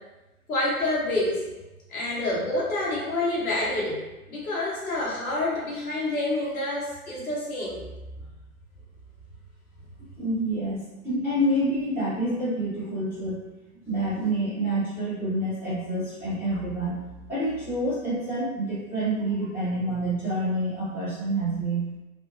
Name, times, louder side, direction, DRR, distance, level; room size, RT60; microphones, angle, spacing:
voice 1, 0.5-1.4 1.9-4.0 4.3-7.8, left 2 dB, 70° left, -4 dB, 1.0 m, -27 dB
voice 2, 10.2-13.3 13.9-17.0 17.3-21.8, right 1 dB, 5° right, -14 dB, 1.1 m, -27 dB
2.8 x 2.1 x 2.6 m, 1.1 s
figure-of-eight pair, 110°, 44 cm